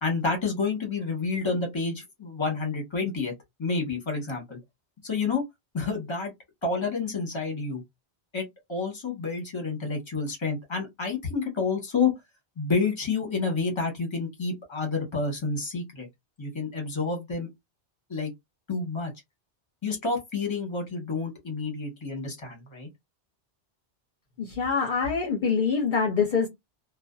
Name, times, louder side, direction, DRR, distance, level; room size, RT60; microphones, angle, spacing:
voice 1, 0.0-3.3 3.6-4.6 5.0-5.4 5.7-6.3 6.6-7.8 8.3-12.1 12.6-16.1 16.4-17.5 18.1-18.3 18.7-19.1 19.8-22.9, left 4 dB, 30° left, 1.0 m, -29 dB
voice 2, 24.4-26.5, left 5 dB, 55° left, 0.7 m, -25 dB
2.5 x 2.3 x 2.3 m
omnidirectional pair, 1.1 m